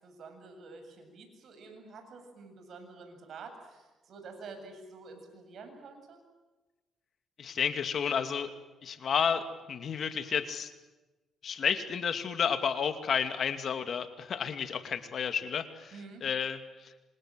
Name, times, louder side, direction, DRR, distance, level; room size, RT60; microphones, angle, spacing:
voice 1, 0.0-6.2 15.9-16.2, right 4 dB, 65° right, 6 dB, 7.9 m, -48 dB
voice 2, 7.4-8.5 8.8-10.7 11.4-15.9 16.2-16.9, left 7 dB, 55° left, 9 dB, 2.5 m, -31 dB
27.0 x 27.0 x 7.7 m, 1.2 s
cardioid pair, 90°, 0 cm